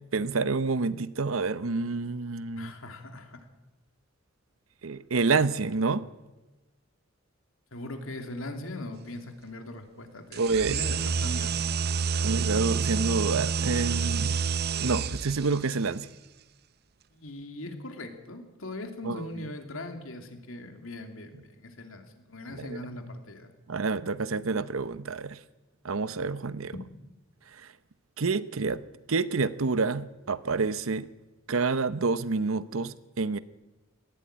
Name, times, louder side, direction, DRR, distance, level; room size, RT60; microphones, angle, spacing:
voice 1, 0.1-2.7 4.8-6.1 10.4-10.8 12.2-14.4 14.8-16.1 19.0-19.3 22.5-22.8 23.7-25.4 25.8-26.7 27.5-27.7 28.2-28.8 29.1-31.1 31.5-33.4, right 4 dB, 80° right, 15 dB, 0.8 m, -28 dB
voice 2, 2.6-3.4 7.7-11.6 17.1-23.5 26.7-26.8, left 2 dB, 80° left, 5 dB, 2.8 m, -40 dB
sound 1, 10.3-15.6, right 5 dB, 50° right, 0.7 m, -28 dB
19.0 x 15.5 x 9.0 m, 1.1 s
head